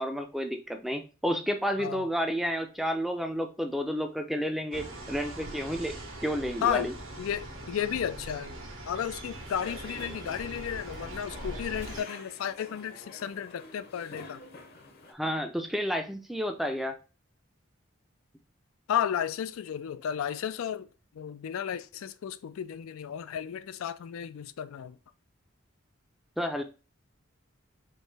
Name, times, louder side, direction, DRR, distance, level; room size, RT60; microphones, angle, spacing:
voice 1, 0.0-5.9 6.2-6.9 15.1-17.0 26.4-26.6, equal, ahead, 0.4 m, -31 dB
sound 1, 4.7-12.0, right 1 dB, 70° right, 1.4 m, -41 dB
voice 2, 7.2-8.6 8.9-14.4 18.9-20.9 21.1-25.0, left 9 dB, 85° left, 0.3 m, -33 dB
sound 2, 9.3-15.1, left 2 dB, 45° left, 0.7 m, -48 dB
4.5 x 3.1 x 3.3 m
head